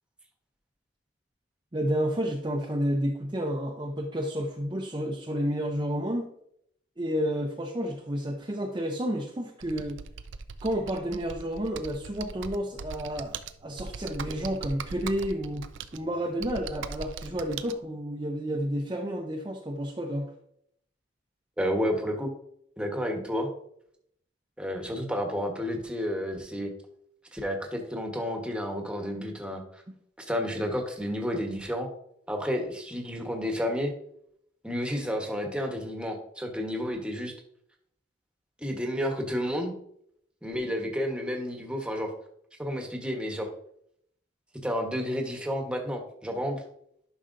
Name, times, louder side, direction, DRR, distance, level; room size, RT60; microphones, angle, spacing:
voice 1, 1.7-6.3 7.0-10.0 10.6-15.6 15.9-20.3, equal, 25° right, 0 dB, 0.6 m, -30 dB
Computer keyboard, 9.6-17.7, right 5 dB, 80° right, 0.5 m, -40 dB
voice 2, 21.6-22.3 22.8-23.5 24.6-26.7 27.3-29.8 30.2-31.9 32.3-33.9 34.6-37.3 38.6-39.7 40.4-42.1 42.6-43.5 44.6-46.6, equal, 5° right, 2 dB, 1.1 m, -31 dB
11.0 x 5.6 x 2.6 m, 0.70 s
head